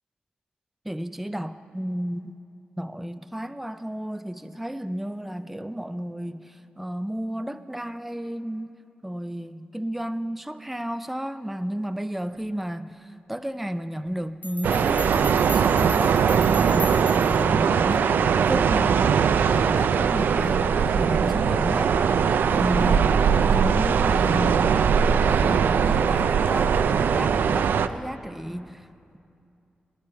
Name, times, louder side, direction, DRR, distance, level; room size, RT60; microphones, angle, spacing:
voice 1, 0.9-2.3 2.8-8.7 9.0-16.2 16.6-19.0 19.5-22.0 22.5-23.2 23.5-24.8 25.2-28.8, equal, 5° right, 10 dB, 0.4 m, -32 dB
sound 1, 14.1-14.2 14.4-17.6, left 1 dB, 60° left, 1.4 m, -38 dB
sound 2, 14.6-27.9, right 7 dB, 85° right, 0.4 m, -21 dB
21.5 x 10.0 x 4.6 m, 2.5 s
cardioid pair, 85°, 3 cm